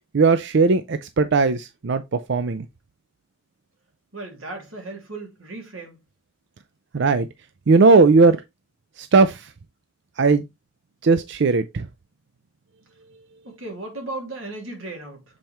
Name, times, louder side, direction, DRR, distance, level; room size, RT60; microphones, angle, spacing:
voice 1, 0.1-2.7 6.9-7.3 7.7-8.4 9.0-9.5 10.2-10.4 11.0-11.9, right 4 dB, 60° right, 0.5 m, -18 dB
voice 2, 4.1-6.0 13.4-15.2, right 2 dB, 85° right, 3.0 m, -35 dB
7.5 x 4.4 x 3.3 m
head